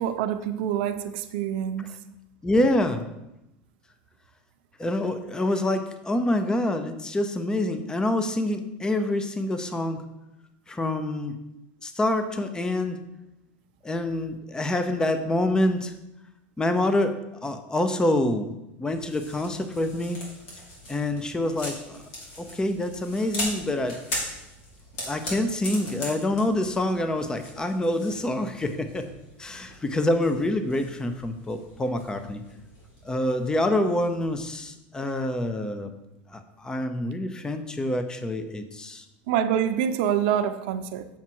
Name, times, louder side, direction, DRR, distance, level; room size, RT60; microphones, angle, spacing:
voice 1, 0.0-1.9 39.3-41.1, right 9 dB, 70° right, 9 dB, 0.7 m, -26 dB
voice 2, 2.4-3.0 4.8-10.0 10.7-11.4 11.8-13.0 13.8-15.9 16.6-18.5 18.8-20.2 20.9-22.0 22.4-24.0 25.1-29.1 29.4-32.4 33.0-35.9 36.3-39.0, left 1 dB, 15° left, 8 dB, 0.7 m, -26 dB
sound 1, 18.9-34.6, left 1 dB, 75° left, 3.1 m, -40 dB
7.3 x 5.9 x 4.6 m, 0.91 s
supercardioid pair, 105°, 6 cm